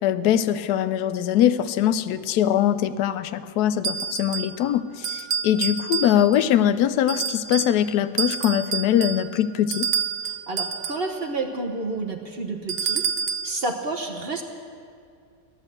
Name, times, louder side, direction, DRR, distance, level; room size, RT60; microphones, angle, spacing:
voice 1, 0.0-9.9, left 10 dB, 75° left, 13 dB, 1.1 m, -22 dB
sound 1, 3.8-4.6 5.0-6.5 7.1-7.8 8.2-11.1 12.7-13.5, right 7 dB, 60° right, 0.8 m, -28 dB
voice 2, 10.2-13.0 13.4-14.4, right 3 dB, 40° right, 2 dB, 1.1 m, -30 dB
15.5 x 10.5 x 7.7 m, 2.3 s
omnidirectional pair, 1.8 m